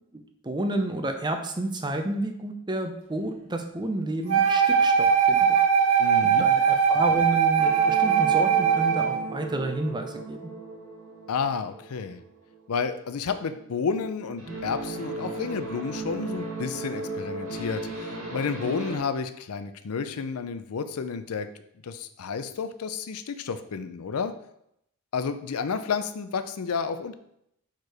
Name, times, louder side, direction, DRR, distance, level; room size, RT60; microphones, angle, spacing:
voice 1, 0.1-5.6 5.8-10.4, right 1 dB, 20° right, 5 dB, 0.6 m, -31 dB
Wind instrument woodwind instrument, 4.3-9.2, right 7 dB, 85° right, 1.2 m, -20 dB
voice 2, 6.0-6.5 11.3-12.2 12.7-21.5 21.8-24.3 25.1-27.1, left 5 dB, 80° left, 10 dB, 0.5 m, -31 dB
sound 1, 7.6-12.9 13.2-19.0, right 2 dB, 70° right, 2.1 m, -37 dB
4.8 x 4.5 x 4.7 m, 0.75 s
head